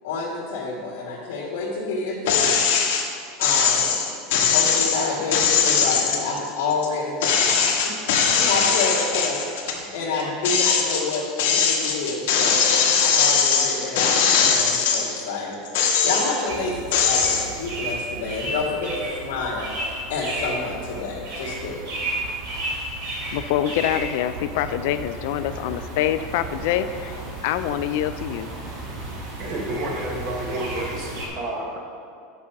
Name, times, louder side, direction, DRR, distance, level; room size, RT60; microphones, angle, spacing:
voice 1, 0.0-2.6 3.4-4.0 4.3-7.7 8.3-9.4 9.9-12.7 13.0-15.6 16.0-19.7 20.1-21.7, left 3 dB, 90° left, -5 dB, 1.7 m, -28 dB
sound 1, 2.3-3.0 3.4-6.9 7.2-9.8 10.2-15.2 15.6-16.5 16.9-17.4, left 6 dB, 70° left, 1.2 m, -20 dB
sound 2, 16.5-31.3, right 1 dB, 70° right, 2.3 m, -33 dB
voice 2, 23.3-28.5, left 11 dB, 55° left, 12 dB, 0.3 m, -25 dB
voice 3, 29.4-31.8, right 1 dB, 40° right, -1 dB, 1.0 m, -30 dB
7.5 x 5.5 x 5.8 m, 2.3 s
supercardioid pair, 180°, 0 cm